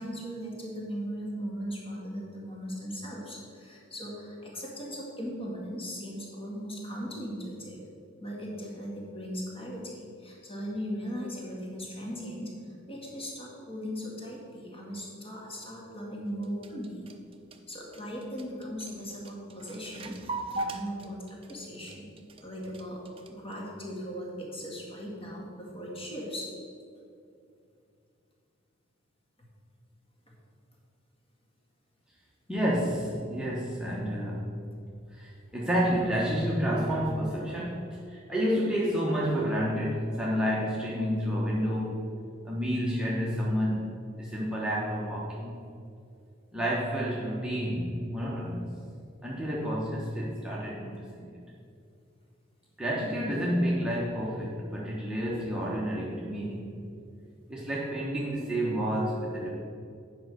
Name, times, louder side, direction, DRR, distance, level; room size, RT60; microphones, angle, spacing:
voice 1, 0.0-7.8 8.2-17.1 17.7-22.1 22.4-26.5, equal, 30° left, -3 dB, 2.0 m, -38 dB
sound 1, 16.3-23.5, right 2 dB, 25° right, 0.6 m, -40 dB
voice 2, 32.5-34.6 35.1-42.0 42.4-43.9 44.2-45.5 46.5-48.7 49.2-51.3 52.8-56.8 57.5-59.5, equal, 5° right, -6 dB, 1.0 m, -30 dB
8.9 x 5.2 x 6.3 m, 2.5 s
head